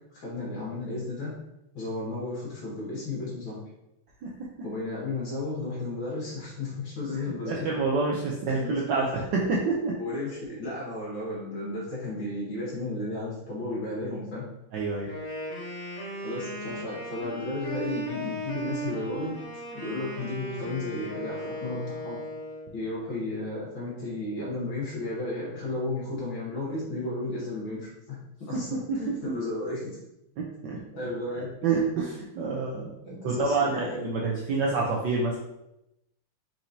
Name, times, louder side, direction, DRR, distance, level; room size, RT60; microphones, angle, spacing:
voice 1, 0.1-1.3 1.7-3.6 4.6-7.7 8.5-9.1 10.0-14.4 16.2-19.3 19.7-22.2 22.7-29.8 31.0-31.5 33.0-34.0, left 2 dB, 65° left, -7 dB, 2.1 m, -33 dB
voice 2, 7.1-9.9 14.7-15.1 28.5-29.3 30.4-30.8 31.6-35.4, right 4 dB, 70° right, -3 dB, 1.2 m, -28 dB
Wind instrument woodwind instrument, 15.1-22.7, right 1 dB, 45° left, 2.1 m, -36 dB
4.3 x 4.3 x 2.7 m, 0.87 s
omnidirectional pair, 2.3 m